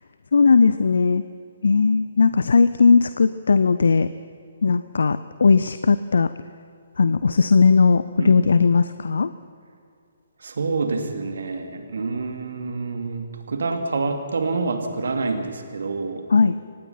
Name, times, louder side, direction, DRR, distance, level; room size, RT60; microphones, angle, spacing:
voice 1, 0.3-1.2 1.6-4.1 4.6-6.3 7.0-9.3 16.3-16.6, left 5 dB, 65° left, 14 dB, 0.6 m, -17 dB
voice 2, 10.4-16.2, right 3 dB, 60° right, 6 dB, 2.7 m, -27 dB
24.5 x 19.0 x 5.8 m, 2.6 s
figure-of-eight pair, 130°, 0 cm